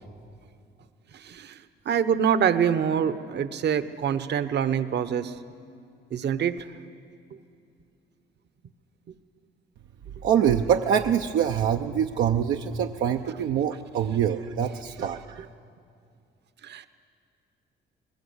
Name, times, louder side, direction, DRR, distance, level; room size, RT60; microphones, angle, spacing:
voice 1, 1.1-5.4 6.1-6.7 15.0-15.1 16.6-16.9, right 8 dB, 60° right, 12 dB, 1.0 m, -26 dB
voice 2, 10.2-15.4, right 8 dB, 80° right, 4 dB, 0.7 m, -24 dB
20.0 x 20.0 x 8.0 m, 2.4 s
cardioid pair, 90°, 20 cm